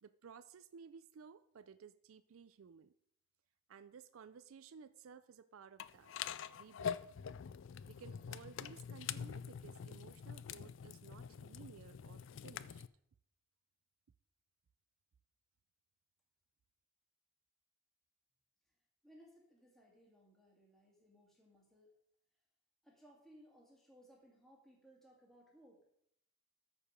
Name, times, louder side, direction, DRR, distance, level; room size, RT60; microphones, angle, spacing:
voice 1, 0.0-2.9 3.7-6.1 6.5-7.2 7.9-12.8, right 6 dB, 85° right, 13 dB, 0.4 m, -57 dB
sound 1, 5.8-12.9, left 8 dB, 65° left, 0.4 m, -45 dB
voice 2, 19.0-22.0 22.8-25.8, equal, ahead, -3 dB, 2.0 m, -64 dB
13.5 x 4.9 x 5.1 m, 0.71 s
head